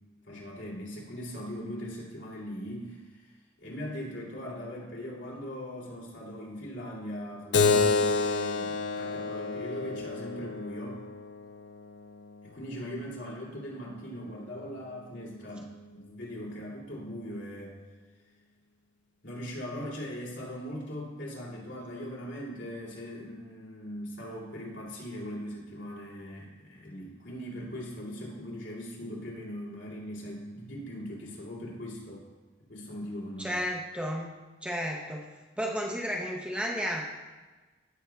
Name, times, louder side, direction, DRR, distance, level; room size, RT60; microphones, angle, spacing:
voice 1, 0.3-3.3 3.6-11.0 12.4-17.8 19.2-32.3 32.7-33.6, equal, 80° left, -5 dB, 2.6 m, -40 dB
Keyboard (musical), 7.5-12.6, left 4 dB, 65° left, 0.4 m, -29 dB
voice 2, 33.4-34.3 34.6-35.3 35.6-37.1, equal, 5° right, -1 dB, 0.6 m, -32 dB
16.5 x 5.6 x 2.3 m, 1.2 s
head